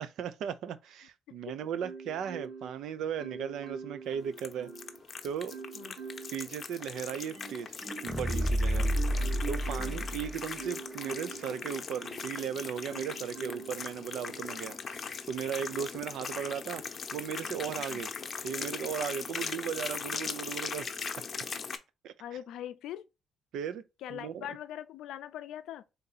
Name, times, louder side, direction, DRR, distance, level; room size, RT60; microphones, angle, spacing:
voice 1, 0.0-4.7 5.2-5.6 5.8-5.9 6.3-7.7 8.0-8.9 9.5-16.8 17.1-18.1 18.4-21.0 22.0-22.1 23.5-23.8 24.1-24.5, right 8 dB, 80° right, 0.4 m, -36 dB
Marimba xylophone, 1.8-2.8 3.2-5.0 5.5-6.4 6.9-12.4 12.9-13.8 14.3-14.6, right 5 dB, 55° right, 1.4 m, -44 dB
sound 1, 4.3-21.8, left 5 dB, 45° left, 0.7 m, -40 dB
sound 2, 7.8-10.7 11.0-11.1, equal, 5° left, 0.3 m, -30 dB
voice 2, 9.8-10.1 17.9-18.0 22.2-23.1 24.0-25.8, left 11 dB, 85° left, 0.4 m, -42 dB
3.9 x 2.8 x 3.8 m
cardioid pair, 90°, 0 cm